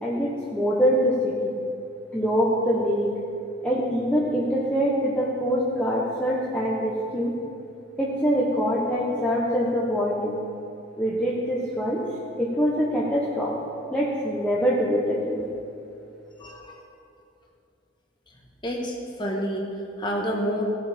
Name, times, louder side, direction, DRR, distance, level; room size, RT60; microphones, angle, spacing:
voice 1, 0.0-1.5 2.1-3.1 3.6-7.3 8.0-10.4 11.0-12.0 12.4-13.5 13.9-15.5, equal, 5° left, -7 dB, 1.2 m, -24 dB
voice 2, 16.4-16.8 18.6-19.6 20.0-20.6, equal, 25° left, -1 dB, 1.6 m, -28 dB
16.5 x 7.2 x 5.2 m, 2.7 s
head